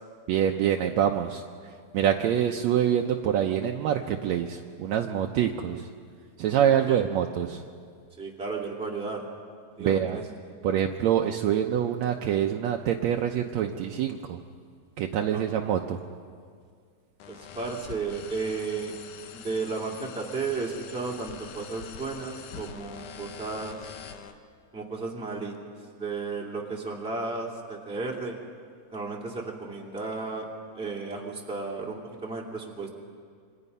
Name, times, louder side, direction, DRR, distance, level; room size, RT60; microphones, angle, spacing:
voice 1, 0.3-5.9 6.4-7.6 9.8-10.2 10.6-14.4 15.0-16.0, right 9 dB, 75° right, 3 dB, 1.9 m, -26 dB
voice 2, 8.2-9.2 9.7-10.2 15.3-15.6 17.3-18.9 19.3-23.9 24.7-25.5 25.9-28.4 28.9-30.5 30.7-32.9, right 4 dB, ahead, -1 dB, 2.2 m, -34 dB
sound 1, 17.2-24.3, left 8 dB, 85° left, 2.6 m, -44 dB
27.0 x 25.0 x 5.5 m, 2.1 s
omnidirectional pair, 3.4 m